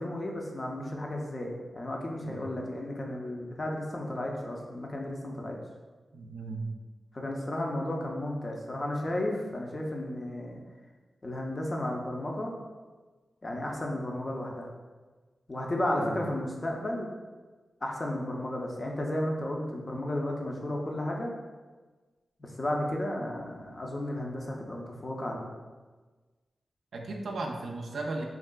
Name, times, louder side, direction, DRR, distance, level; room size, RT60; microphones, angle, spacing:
voice 1, 0.0-5.6 7.1-10.6 11.2-12.6 13.4-14.7 15.5-17.1 17.8-21.3 22.4-25.5, left 1 dB, 40° left, 0 dB, 0.5 m, -33 dB
voice 2, 6.1-6.7 16.0-16.2 26.9-28.2, right 2 dB, 85° right, 1 dB, 0.3 m, -36 dB
3.6 x 2.3 x 2.2 m, 1.3 s
cardioid pair, 55°, 0 cm